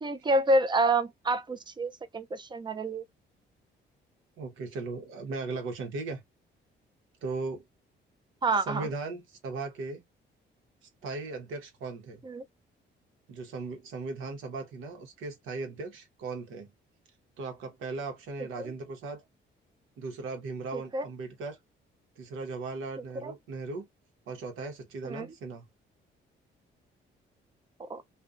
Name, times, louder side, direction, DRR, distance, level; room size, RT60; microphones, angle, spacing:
voice 1, 0.0-3.0 8.4-8.9 12.2-12.4 18.6-18.7 20.7-21.1 23.2-23.3 25.0-25.3 27.8-28.0, right 2 dB, 25° right, 0.4 m, -28 dB
voice 2, 4.4-6.2 7.2-7.6 8.6-10.0 11.0-12.2 13.3-16.7 17.4-19.2 20.0-21.6 22.2-23.9 24.3-25.6, right 3 dB, 90° right, 0.9 m, -37 dB
2.5 x 2.1 x 2.3 m
cardioid pair, 90°, 20 cm